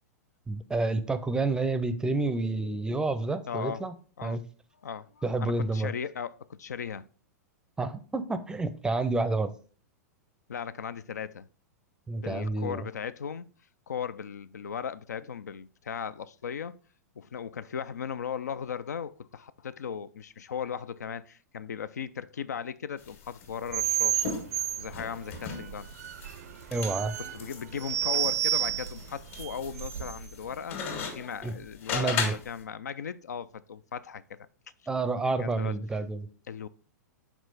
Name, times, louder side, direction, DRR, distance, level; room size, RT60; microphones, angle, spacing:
voice 1, 0.5-3.9 4.2-4.4 5.2-5.9 7.8-9.5 12.1-12.9 26.7-27.1 31.4-31.5 31.9-32.3 34.9-36.3, right 3 dB, 10° right, 0.5 m, -29 dB
voice 2, 3.5-3.8 4.2-4.4 4.8-7.0 10.5-11.5 12.2-13.5 13.9-16.8 17.2-24.5 24.8-25.9 27.3-34.4 35.4-35.7 36.5-36.7, left 7 dB, 75° left, 0.3 m, -37 dB
sound 1, 23.0-32.6, left 6 dB, 55° left, 1.8 m, -38 dB
sound 2, 23.7-30.3, right 12 dB, 65° right, 0.5 m, -31 dB
6.1 x 4.5 x 4.0 m
figure-of-eight pair, 100°, 9 cm